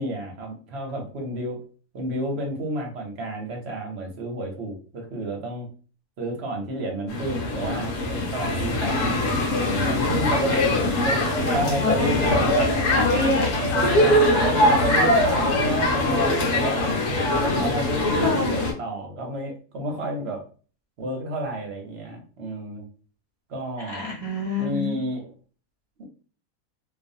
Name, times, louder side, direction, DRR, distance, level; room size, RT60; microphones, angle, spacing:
voice 1, 0.0-1.6 1.9-5.7 6.2-9.2 9.8-12.6 13.6-17.0 17.4-20.4 21.0-22.8 23.5-24.1 24.6-25.3 26.0-26.1, right 1 dB, 60° right, 1 dB, 0.7 m, -30 dB
sound 1, 7.1-18.7, left 2 dB, 85° left, 1.2 m, -23 dB
voice 2, 11.3-12.1 12.6-13.5 13.8-14.5 18.1-18.7 23.9-24.9, equal, 25° left, -4 dB, 1.0 m, -24 dB
2.4 x 2.3 x 2.6 m, 0.39 s
omnidirectional pair, 1.6 m